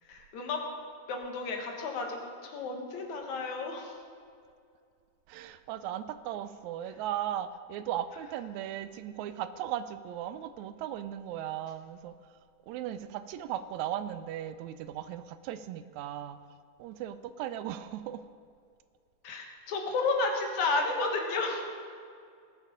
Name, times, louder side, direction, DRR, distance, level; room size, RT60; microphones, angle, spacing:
voice 1, 0.1-0.6 1.1-4.0 19.2-21.6, left 3 dB, 75° left, 2 dB, 2.8 m, -32 dB
voice 2, 5.3-12.4 12.7-16.4 16.8-18.3, right 11 dB, 85° right, 12 dB, 1.9 m, -37 dB
19.5 x 6.5 x 5.1 m, 2.2 s
omnidirectional pair, 3.3 m